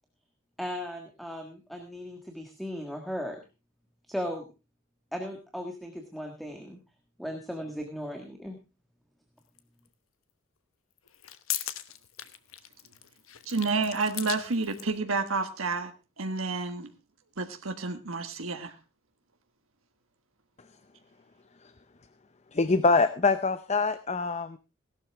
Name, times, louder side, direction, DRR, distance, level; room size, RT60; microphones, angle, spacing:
voice 1, 0.6-3.4 4.1-4.4 5.1-6.8 7.2-8.6, equal, ahead, 4 dB, 1.6 m, -37 dB
sound 1, 9.6-9.7 11.0-15.0, left 12 dB, 85° left, 1.1 m, -38 dB
voice 2, 13.4-15.9 16.2-16.9 17.4-18.7, right 4 dB, 85° right, 6 dB, 1.5 m, -30 dB
voice 3, 22.5-24.6, left 3 dB, 30° left, 13 dB, 0.6 m, -24 dB
17.5 x 12.0 x 3.4 m, 0.30 s
head